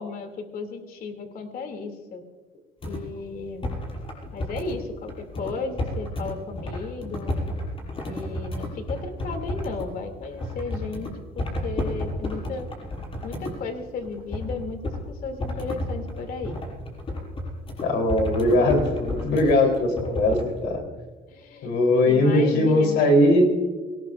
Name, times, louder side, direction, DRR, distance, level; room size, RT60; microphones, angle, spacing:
voice 1, 0.0-2.2 2.8-3.7 4.3-7.4 8.1-12.7 13.2-16.6 19.6-19.7 21.3-21.7 22.0-23.1, left 4 dB, 60° left, 5 dB, 2.4 m, -34 dB
sound 1, 2.8-3.0 3.6-4.8 5.1-9.9 10.2-11.1 11.4-13.6 14.0-15.0 15.4-20.5, left 1 dB, 30° left, 6.0 m, -31 dB
voice 2, 17.8-20.8 21.6-23.5, left 1 dB, 80° left, 3 dB, 3.4 m, -20 dB
24.0 x 18.5 x 2.4 m, 1.4 s
cardioid pair, 110°, 17 cm